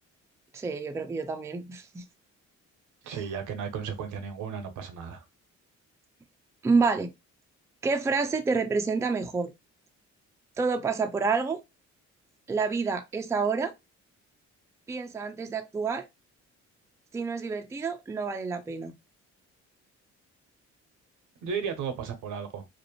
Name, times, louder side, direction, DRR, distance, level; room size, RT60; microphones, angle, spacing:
voice 1, 0.5-2.0 3.1-3.2 6.6-7.1 7.8-9.5 10.6-11.6 12.5-13.7 14.9-16.1 17.1-19.0, right 4 dB, 10° right, 0.3 m, -28 dB
voice 2, 3.0-5.2 21.4-22.7, right 6 dB, 80° right, 0.7 m, -34 dB
2.5 x 2.0 x 2.9 m
cardioid pair, 90°, 30 cm